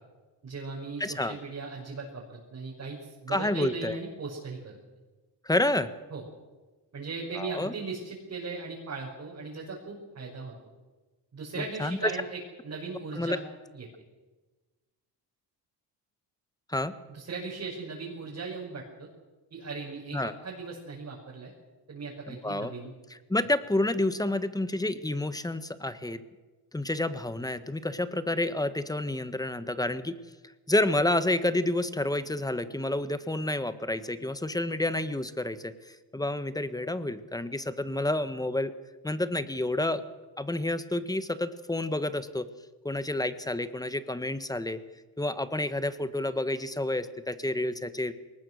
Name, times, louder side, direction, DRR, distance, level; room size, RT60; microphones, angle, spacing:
voice 1, 0.4-4.8 6.1-6.2 6.9-10.5 11.3-12.4 12.6-13.4 13.7-13.9 17.1-19.1 19.5-21.5 21.9-22.9, right 4 dB, 40° right, -3 dB, 6.0 m, -38 dB
voice 2, 1.0-1.4 3.3-3.9 5.4-5.9 7.3-7.7 11.8-12.1 13.2-13.4 16.7-16.9 20.1-20.3 22.3-22.7 23.3-26.2 26.7-30.1 30.7-38.7 39.0-40.0 40.4-42.5 42.8-44.8 45.2-48.1, left 1 dB, 10° left, 12 dB, 1.3 m, -29 dB
22.0 x 19.5 x 6.4 m, 1.2 s
cardioid pair, 100°, 41 cm